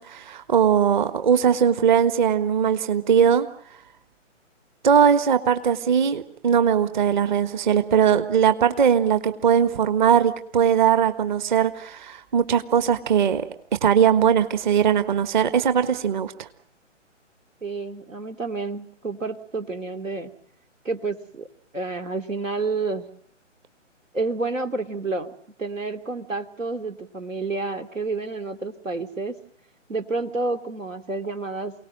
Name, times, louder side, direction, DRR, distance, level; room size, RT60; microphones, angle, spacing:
voice 1, 0.0-3.5 4.8-13.4 13.8-16.5, right 8 dB, 40° right, 10 dB, 1.5 m, -20 dB
voice 2, 17.6-20.3 20.8-21.5 21.7-23.1 24.1-25.3 25.6-29.4 29.9-31.7, right 3 dB, 85° right, 9 dB, 2.6 m, -29 dB
29.0 x 18.5 x 7.6 m, 0.69 s
figure-of-eight pair, 140°, 38 cm